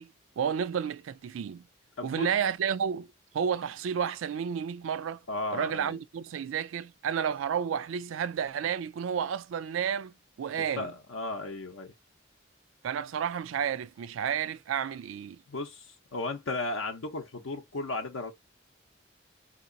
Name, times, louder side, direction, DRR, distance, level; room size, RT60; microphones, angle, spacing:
voice 1, 0.0-1.6 2.0-5.2 5.5-10.9 12.8-15.4, right 7 dB, 80° right, 0.3 m, -31 dB
voice 2, 2.0-2.3 5.3-6.0 10.6-11.9 15.5-18.3, left 2 dB, 90° left, 0.6 m, -35 dB
3.8 x 2.8 x 2.6 m
head